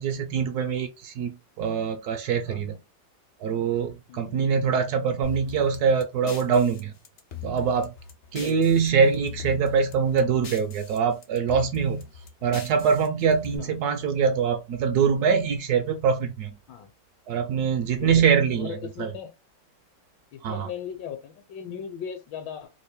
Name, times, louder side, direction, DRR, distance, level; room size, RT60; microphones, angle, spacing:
voice 1, 0.0-2.7 3.4-6.9 7.4-7.9 8.3-12.0 12.4-16.6 17.3-19.1 20.4-20.7, right 6 dB, 70° right, 0.9 m, -24 dB
voice 2, 2.4-2.8 4.1-4.5 8.3-8.8 13.6-13.8 16.7-16.9 18.0-18.3 18.5-19.3 20.3-22.7, left 8 dB, 75° left, 1.3 m, -37 dB
sound 1, 5.2-8.9 9.1-11.0 11.2-13.6, left 7 dB, 90° left, 0.5 m, -41 dB
3.2 x 2.5 x 3.5 m
omnidirectional pair, 2.1 m